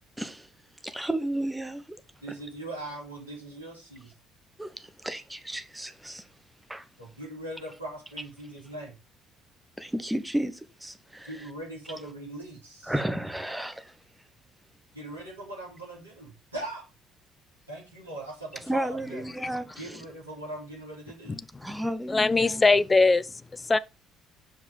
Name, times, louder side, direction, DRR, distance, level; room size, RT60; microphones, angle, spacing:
voice 1, 0.2-0.5 0.8-2.0 4.6-6.3 6.7-6.9 9.8-11.5 12.8-14.0 18.7-20.0 21.6-22.7, right 1 dB, 5° right, 1.0 m, -33 dB
voice 2, 2.2-4.1 7.0-9.0 11.2-12.9 14.9-16.9 17.7-19.2 19.8-21.4, right 1 dB, 85° right, 2.4 m, -40 dB
voice 3, 21.3-21.8 22.1-23.8, left 3 dB, 20° left, 0.4 m, -23 dB
6.0 x 4.7 x 5.1 m
figure-of-eight pair, 50°, 0 cm